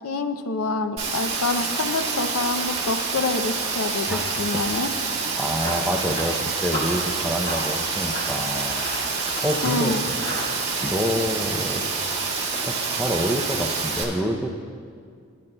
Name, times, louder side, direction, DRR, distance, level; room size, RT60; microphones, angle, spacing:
voice 1, 0.0-4.9 9.6-10.0, left 3 dB, 80° left, 9 dB, 0.5 m, -27 dB
Rain, 1.0-14.0, right 4 dB, 30° right, 1.5 m, -27 dB
voice 2, 4.1-4.5 5.3-10.1 10.8-11.8 12.1-12.3 12.7-14.5, equal, 5° right, 2 dB, 0.5 m, -28 dB
Run, 5.2-10.5, equal, 40° left, 1.7 m, -35 dB
18.0 x 10.0 x 2.2 m, 2.2 s
head